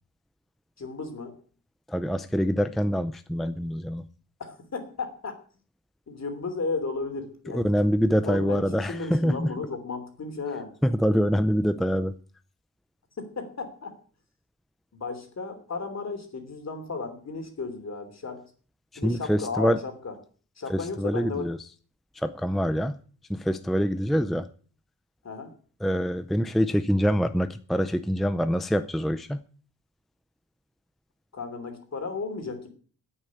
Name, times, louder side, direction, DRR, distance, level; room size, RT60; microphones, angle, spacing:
voice 1, 0.8-1.3 4.4-5.3 6.1-7.7 8.2-10.7 13.2-14.0 14.9-18.4 19.0-20.1 20.6-21.5 25.2-25.5 31.3-32.7, left 4 dB, 50° left, 6 dB, 3.1 m, -34 dB
voice 2, 1.9-4.0 7.5-9.5 10.8-12.1 19.0-19.8 20.7-21.6 22.2-23.0 23.3-24.5 25.8-29.4, equal, ahead, 11 dB, 0.5 m, -25 dB
9.8 x 8.8 x 9.6 m, 0.43 s
wide cardioid pair, 150°, 34 cm